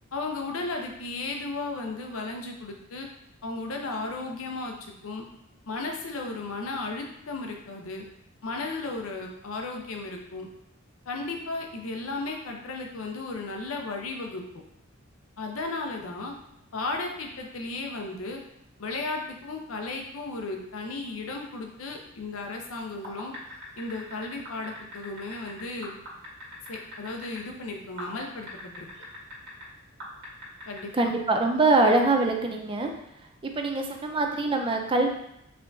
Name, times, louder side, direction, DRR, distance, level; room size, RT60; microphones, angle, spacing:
voice 1, 0.1-3.1 3.4-5.2 5.7-8.0 8.4-10.5 11.1-14.4 15.4-16.3 16.7-18.4 18.8-23.3 23.8-25.9 26.7-28.9 30.7-31.1, left 3 dB, 90° left, 1 dB, 0.7 m, -35 dB
sound 1, 23.0-27.4 28.0-29.6 30.0-31.0, left 1 dB, 55° right, 1.4 m, -41 dB
voice 2, 30.9-32.9 33.4-35.1, right 2 dB, 25° right, 3 dB, 0.4 m, -23 dB
4.4 x 3.5 x 2.6 m, 0.81 s
head